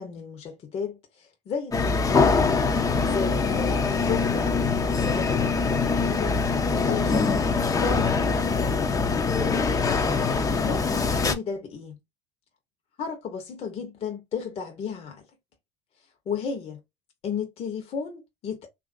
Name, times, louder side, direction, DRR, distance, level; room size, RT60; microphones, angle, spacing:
voice 1, 0.0-2.4 3.0-9.2 10.6-12.0 13.0-15.3 16.3-16.8 17.2-18.7, left 6 dB, 45° left, 0.9 m, -34 dB
sound 1, 1.7-11.4, left 4 dB, 25° left, 0.6 m, -23 dB
3.1 x 2.5 x 2.5 m
hypercardioid pair, 80°, 14 cm